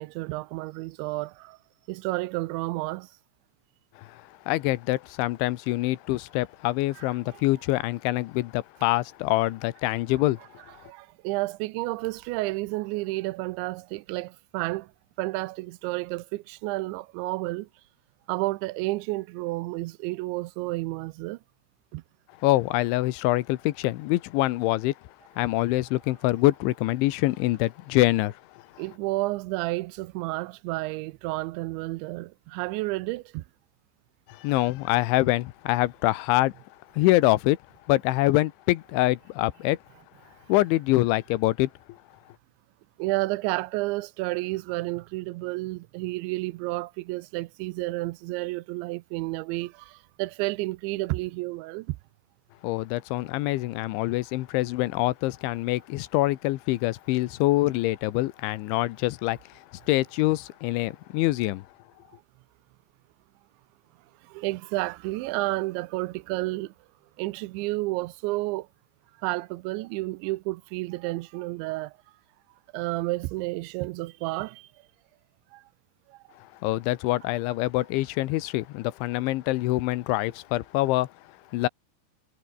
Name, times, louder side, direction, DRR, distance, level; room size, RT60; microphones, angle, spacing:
voice 1, 0.0-1.6 1.9-3.1 7.0-7.1 7.3-7.4 10.8-14.9 15.2-17.7 18.3-21.4 21.9-22.0 28.8-33.4 43.0-52.0 64.2-66.7 67.2-68.7 69.2-71.9 72.7-74.7 75.5-75.6 76.1-76.2, right 21 dB, 85° right, 3.0 m, -31 dB
voice 2, 4.0-10.4 22.4-24.9 25.4-28.4 34.3-36.5 36.9-37.6 37.9-39.8 40.5-41.7 52.6-61.6 76.6-81.1 81.5-81.7, left 18 dB, 90° left, 3.3 m, -25 dB
omnidirectional pair, 5.3 m